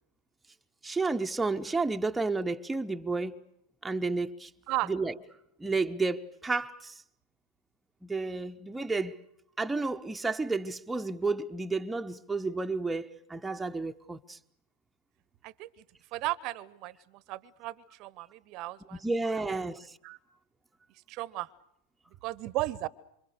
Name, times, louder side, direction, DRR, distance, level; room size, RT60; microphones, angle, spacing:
voice 1, 0.8-3.3 3.8-4.5 4.8-5.2 5.6-6.9 8.0-9.2 9.6-14.4 19.0-19.9, right 3 dB, 5° right, 1.0 m, -31 dB
voice 2, 16.1-16.9 17.3-19.0 20.0-20.2 21.1-21.5 22.2-22.9, right 18 dB, 40° right, 1.0 m, -35 dB
27.5 x 25.5 x 6.6 m
figure-of-eight pair, 90°, 0 cm